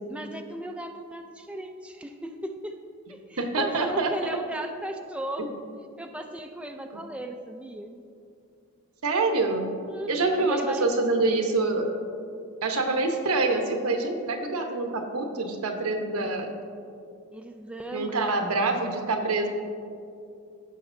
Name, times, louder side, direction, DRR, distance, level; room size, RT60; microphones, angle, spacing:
voice 1, 0.1-5.6 6.0-8.0 9.9-10.9 17.3-18.4, right 1 dB, 5° right, 4 dB, 0.3 m, -37 dB
voice 2, 3.4-4.1 5.4-5.5 6.9-7.0 9.0-9.7 10.1-11.9 12.6-16.5 17.9-19.5, right 3 dB, 85° right, 4 dB, 1.0 m, -26 dB
15.5 x 5.9 x 2.6 m, 2.5 s
head